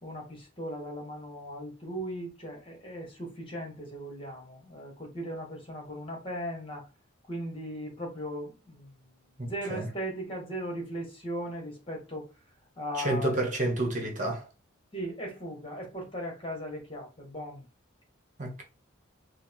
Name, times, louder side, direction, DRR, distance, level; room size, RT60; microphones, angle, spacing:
voice 1, 0.0-6.8 7.3-8.9 9.4-12.3 12.8-13.3 14.9-17.6, equal, 25° left, 1.6 m, -38 dB
voice 2, 12.9-14.5 18.4-18.6, right 1 dB, 35° right, 1.3 m, -29 dB
4.6 x 2.3 x 4.6 m
head